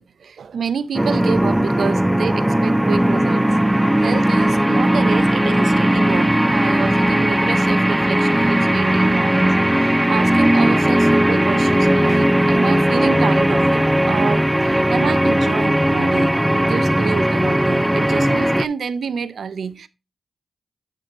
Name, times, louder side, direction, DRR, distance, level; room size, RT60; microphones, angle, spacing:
voice 1, 0.0-19.9, right 6 dB, 75° right, 0.5 m, -28 dB
sound 1, 0.9-18.6, right 1 dB, 10° right, 0.4 m, -17 dB
9.2 x 6.1 x 3.0 m
cardioid pair, 45°, 0 cm